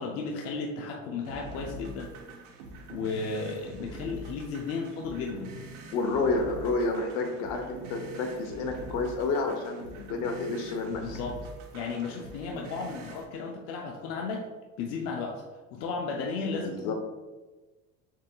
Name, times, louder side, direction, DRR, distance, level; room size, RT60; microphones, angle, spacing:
voice 1, 0.0-2.1 2.9-5.5 10.9-11.4 11.7-14.5 14.8-15.4 15.7-16.9, left 4 dB, 50° left, 1 dB, 0.5 m, -34 dB
sound 1, 1.2-13.2, right 2 dB, 80° right, 0.8 m, -44 dB
voice 2, 5.9-11.0 16.4-16.9, left 3 dB, 70° left, 4 dB, 0.8 m, -30 dB
7.2 x 2.7 x 2.3 m, 1.2 s
cardioid pair, 155°, 32 cm